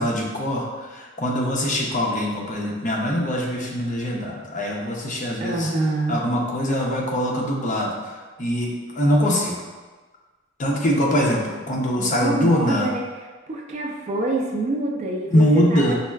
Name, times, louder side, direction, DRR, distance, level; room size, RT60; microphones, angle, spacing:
voice 1, 0.0-5.7 6.1-7.9 8.4-9.6 10.6-12.9 15.3-15.9, equal, 40° left, -2 dB, 0.5 m, -22 dB
voice 2, 5.4-6.2 12.0-13.1 13.5-15.9, right 2 dB, 35° right, 0 dB, 0.3 m, -26 dB
5.3 x 2.3 x 2.2 m, 1.3 s
head